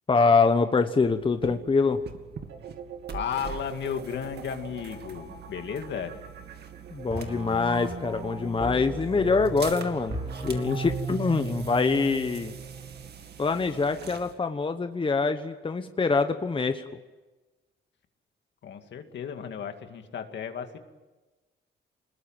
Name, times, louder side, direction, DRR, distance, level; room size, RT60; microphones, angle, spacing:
voice 1, 0.1-2.0 6.9-12.5 13.4-16.8, left 4 dB, 25° left, 8 dB, 1.2 m, -25 dB
sound 1, 1.0-14.3, right 7 dB, 55° right, 2.2 m, -44 dB
sound 2, 2.5-11.0, right 7 dB, 75° right, 2.8 m, -46 dB
voice 2, 3.1-6.2 18.6-20.8, left 7 dB, 65° left, 6 dB, 2.3 m, -34 dB
sound 3, 7.1-13.1, right 3 dB, 30° right, 6.2 m, -36 dB
25.0 x 20.5 x 9.0 m, 1.2 s
cardioid pair, 90°, 20 cm